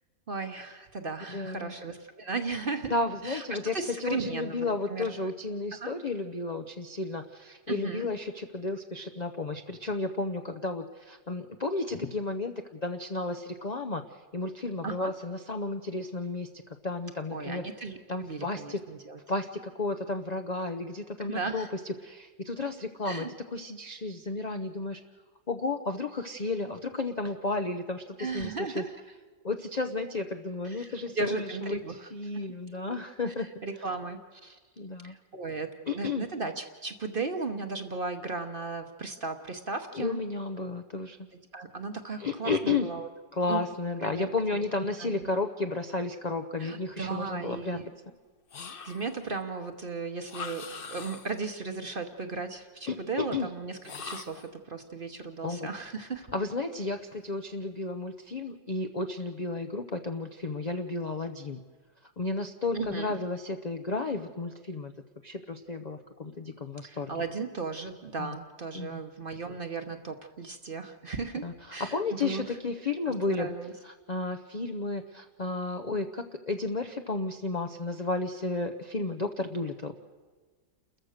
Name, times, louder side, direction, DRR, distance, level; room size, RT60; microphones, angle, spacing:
voice 1, 0.3-3.0 3.2-5.3 5.7-5.9 7.7-8.1 14.8-15.1 17.3-19.2 21.2-21.7 23.0-23.3 28.2-28.9 30.6-32.1 32.3-32.5 32.7-33.0 33.6-34.6 35.0-40.2 41.5-43.1 43.5-43.6 44.0-45.3 46.6-47.9 48.8-56.3 62.7-63.1 66.8-72.4 73.1-73.7, right 4 dB, 40° right, 7 dB, 0.9 m, -36 dB
voice 2, 1.3-1.7 2.9-14.0 14.3-16.5 16.8-17.7 18.1-18.8 19.3-21.7 22.0-25.0 25.5-28.0 28.3-28.8 29.4-31.8 32.1-33.5 34.8-35.1 35.9-36.2 39.9-41.2 42.2-42.9 43.3-47.8 52.9-53.0 53.3-53.5 55.4-55.6 56.3-61.6 62.2-64.9 65.2-67.1 68.2-68.3 68.7-69.0 71.4-73.5 73.8-79.9, left 3 dB, 65° left, 6 dB, 0.4 m, -32 dB
sound 1, 48.5-49.3 50.3-51.5 53.8-54.6, left 5 dB, 45° left, 0.8 m, -42 dB
29.5 x 14.0 x 6.5 m, 1.4 s
omnidirectional pair, 2.0 m